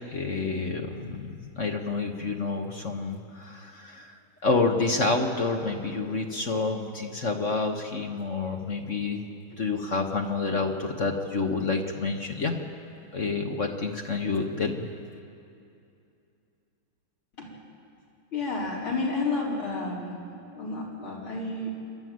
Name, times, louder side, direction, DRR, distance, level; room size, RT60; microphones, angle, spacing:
voice 1, 0.0-9.2 9.5-12.5 13.1-14.9, left 3 dB, 40° left, 3 dB, 1.4 m, -28 dB
voice 2, 18.3-20.2 20.5-21.7, left 3 dB, 70° left, -4 dB, 5.2 m, -30 dB
28.5 x 12.0 x 9.4 m, 2.6 s
omnidirectional pair, 2.4 m